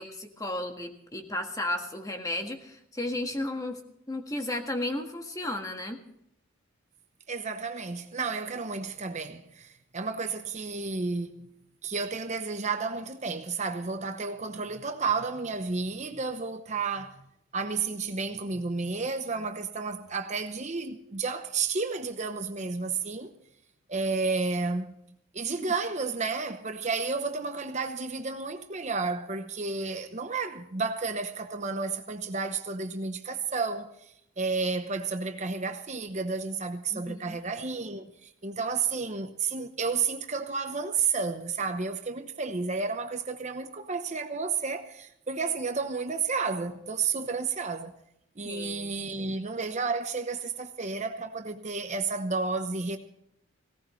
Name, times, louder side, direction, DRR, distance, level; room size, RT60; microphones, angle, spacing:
voice 1, 0.0-3.8 4.1-6.0 36.9-37.4 48.4-49.4, left 1 dB, 15° left, 1.6 m, -34 dB
voice 2, 7.3-11.5 11.8-17.2 17.5-23.3 23.9-25.0 25.3-33.9 34.4-47.9 48.4-53.0, right 4 dB, 35° right, 0.9 m, -31 dB
18.5 x 17.5 x 3.2 m
head